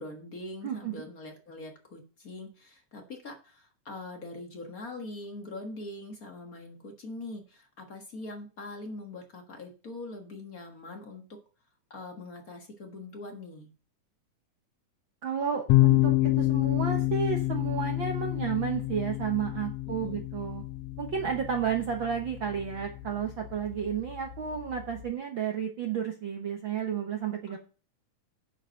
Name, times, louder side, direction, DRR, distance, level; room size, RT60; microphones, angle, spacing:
voice 1, 0.0-11.4 11.9-13.7 20.0-20.2 27.5-27.6, left 2 dB, 45° left, 3 dB, 1.2 m, -42 dB
voice 2, 0.6-1.0 15.2-20.6 21.0-27.6, right 7 dB, 70° right, 3 dB, 1.1 m, -32 dB
sound 1, 15.7-25.1, left 18 dB, 80° left, 1.5 m, -29 dB
10.5 x 5.1 x 6.4 m, 0.36 s
omnidirectional pair, 3.7 m